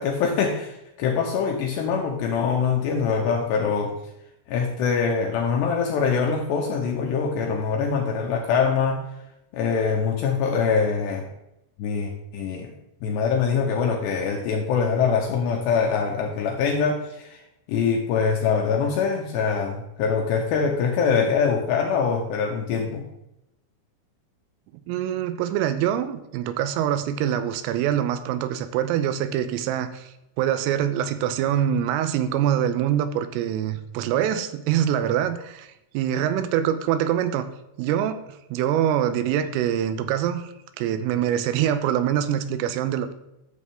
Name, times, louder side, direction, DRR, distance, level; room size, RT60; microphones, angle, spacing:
voice 1, 0.0-3.9 4.5-9.0 9.5-11.3 11.8-12.7 13.0-17.4 17.7-23.0, left 6 dB, 75° left, 2 dB, 2.6 m, -24 dB
voice 2, 24.9-37.5 37.8-43.1, right 10 dB, 85° right, 11 dB, 3.3 m, -24 dB
12.5 x 7.2 x 3.6 m, 0.86 s
omnidirectional pair, 5.9 m